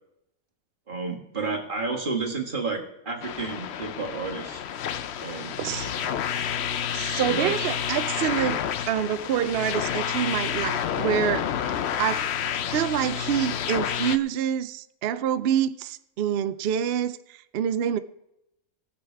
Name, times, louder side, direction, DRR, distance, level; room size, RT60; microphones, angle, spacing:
voice 1, 0.9-4.6 5.2-5.5 7.1-7.5, right 4 dB, 35° right, 2.0 m, -31 dB
sound 1, 3.2-14.2, left 9 dB, 60° left, 0.8 m, -29 dB
voice 2, 5.2-5.9 6.9-8.6 8.9-11.5 12.0-12.3 12.7-18.0, right 9 dB, 60° right, 0.7 m, -27 dB
20.0 x 7.1 x 4.6 m
omnidirectional pair, 1.5 m